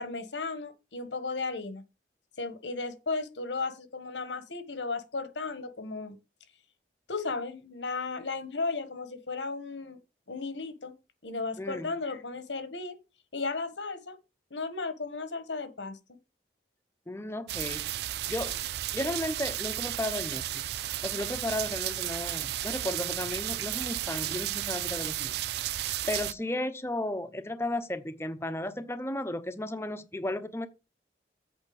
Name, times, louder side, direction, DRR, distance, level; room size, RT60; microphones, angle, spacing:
voice 1, 0.0-1.8 2.4-6.2 7.1-10.0 10.3-10.9 11.2-13.0 13.3-14.1 14.5-16.0, left 3 dB, 85° left, 1.4 m, -35 dB
voice 2, 11.6-11.9 17.1-18.0 18.3-18.6 18.9-25.3 25.6-30.7, left 1 dB, 15° left, 0.8 m, -34 dB
sound 1, 17.5-26.3, right 13 dB, 65° right, 0.4 m, -33 dB
8.2 x 4.3 x 7.1 m
head